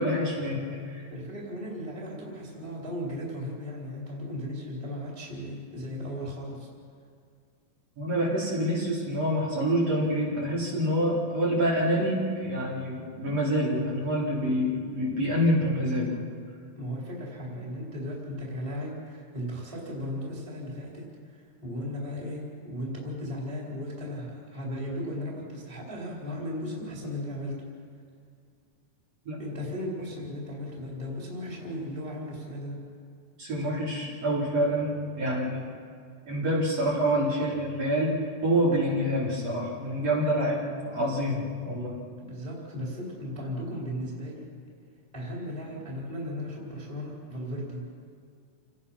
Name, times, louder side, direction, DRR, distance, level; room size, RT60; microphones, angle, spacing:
voice 1, 0.0-1.0 8.0-16.2 29.3-29.4 33.4-35.6 36.3-38.1 38.4-42.0, equal, 45° right, -7 dB, 5.4 m, -27 dB
voice 2, 1.1-6.7 16.7-27.7 29.4-32.9 42.2-44.5 45.1-47.8, equal, 10° right, -4 dB, 3.9 m, -36 dB
29.0 x 18.5 x 5.8 m, 2.2 s
omnidirectional pair, 4.2 m